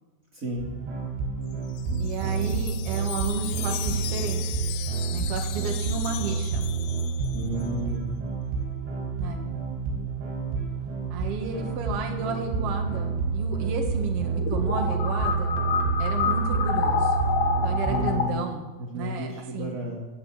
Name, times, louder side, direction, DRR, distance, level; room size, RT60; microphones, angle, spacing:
voice 1, 0.3-0.7 7.3-8.1 17.9-18.4 18.8-20.0, equal, 30° right, -2 dB, 1.7 m, -32 dB
sound 1, 0.6-18.2, right 5 dB, 90° right, 5.9 m, -29 dB
Wind chime, 1.5-7.7, left 15 dB, 90° left, 3.0 m, -38 dB
voice 2, 2.0-4.4 5.1-6.6 9.2-9.4 11.1-15.6 16.0-17.2 17.6-18.6 18.9-19.8, right 5 dB, 70° right, 3 dB, 1.4 m, -33 dB
sound 2, 10.8-10.9 11.2-11.9 14.2-18.3, left 6 dB, 65° left, 2.5 m, -27 dB
13.5 x 7.6 x 8.2 m, 1.2 s
omnidirectional pair, 5.2 m